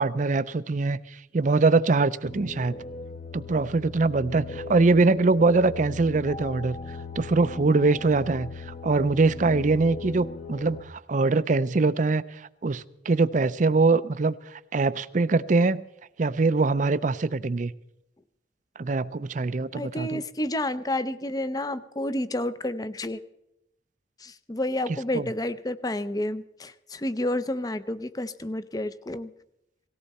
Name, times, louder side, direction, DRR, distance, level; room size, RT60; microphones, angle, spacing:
voice 1, 0.0-2.8 3.3-6.8 7.2-15.8 16.2-17.7 18.8-20.2 25.1-25.3, right 3 dB, 45° right, 0.5 m, -23 dB
sound 1, 2.2-10.8, left 4 dB, 40° left, 1.0 m, -38 dB
voice 2, 19.7-23.2 24.2-29.3, left 1 dB, 20° left, 0.6 m, -30 dB
18.5 x 17.0 x 4.2 m
head